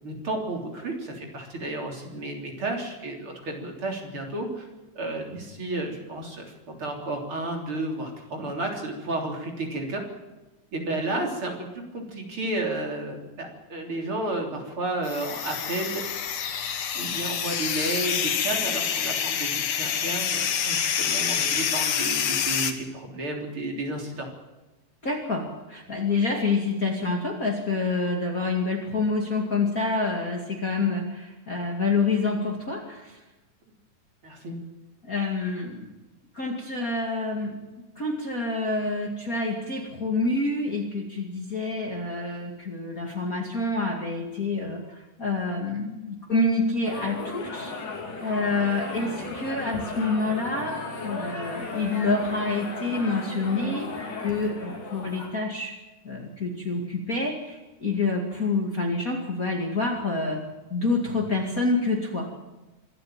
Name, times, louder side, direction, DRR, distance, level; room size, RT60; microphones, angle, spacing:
voice 1, 0.0-4.7 5.0-10.0 10.7-16.2 16.9-24.3 34.2-34.6, right 2 dB, 40° right, 2 dB, 4.1 m, -32 dB
sound 1, 15.0-22.7, left 8 dB, 60° left, 2.5 m, -27 dB
voice 2, 25.0-33.2 35.0-35.9 36.3-37.6 38.0-53.9 54.2-55.7 56.0-60.4 60.7-62.3, left 3 dB, 30° left, 1 dB, 2.3 m, -27 dB
sound 2, 46.8-55.3, left 3 dB, 85° left, 5.1 m, -36 dB
25.5 x 13.0 x 8.9 m, 1.1 s
omnidirectional pair, 3.6 m